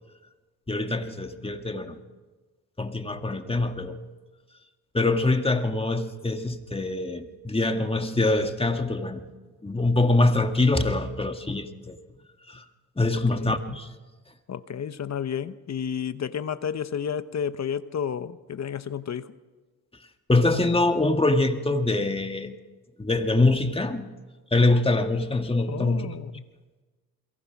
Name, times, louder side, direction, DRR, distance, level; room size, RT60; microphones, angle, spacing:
voice 1, 0.7-2.0 2.8-4.0 4.9-9.3 9.6-12.0 12.4-12.7 13.0-13.9 19.9-20.0 20.3-22.6 23.0-24.1 24.5-26.1, left 2 dB, 15° left, 1.9 m, -24 dB
voice 2, 14.5-19.3 25.7-26.4, left 8 dB, 50° left, 0.9 m, -31 dB
29.0 x 22.5 x 6.0 m
cardioid pair, 85°, 35 cm